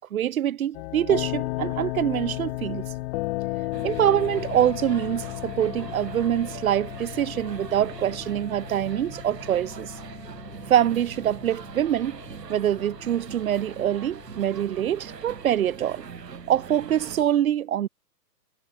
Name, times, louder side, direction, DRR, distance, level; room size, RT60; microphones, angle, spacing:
voice 1, 0.1-2.9 3.8-9.9 10.7-12.2 12.5-16.0 16.5-17.9, right 11 dB, 60° right, 1.2 m, -24 dB
sound 1, 0.7-17.2, left 20 dB, 35° left, 2.2 m, -35 dB
sound 2, 3.7-17.2, right 7 dB, 80° right, 1.7 m, -42 dB
hypercardioid pair, 135°, 49 cm